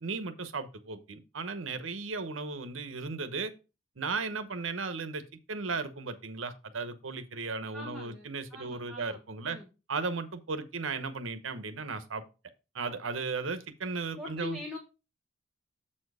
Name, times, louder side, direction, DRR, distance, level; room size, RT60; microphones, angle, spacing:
voice 1, 0.0-3.5 4.0-9.6 9.9-12.2 12.7-14.6, right 4 dB, 85° right, 11 dB, 0.9 m, -36 dB
voice 2, 7.7-9.2 9.5-9.7 14.2-14.8, left 2 dB, ahead, -1 dB, 1.2 m, -41 dB
7.5 x 4.4 x 4.8 m, 0.30 s
head